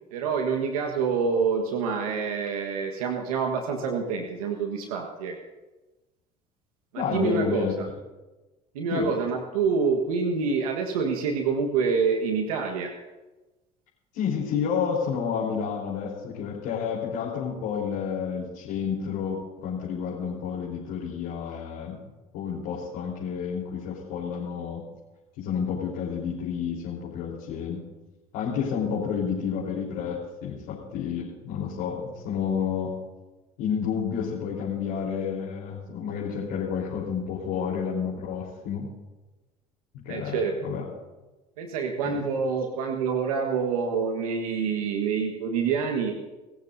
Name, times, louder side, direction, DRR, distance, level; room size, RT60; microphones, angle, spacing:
voice 1, 0.1-5.3 6.9-7.7 8.7-12.9 40.1-40.5 41.6-46.1, right 5 dB, 90° right, 2 dB, 1.5 m, -27 dB
voice 2, 6.9-7.7 8.9-9.1 14.1-22.0 22.3-24.8 25.4-27.8 28.3-32.9 33.6-38.9 40.0-40.8 42.0-42.2, left 7 dB, 75° left, -5 dB, 4.1 m, -30 dB
29.0 x 15.0 x 2.7 m, 1.1 s
hypercardioid pair, 80°, 18 cm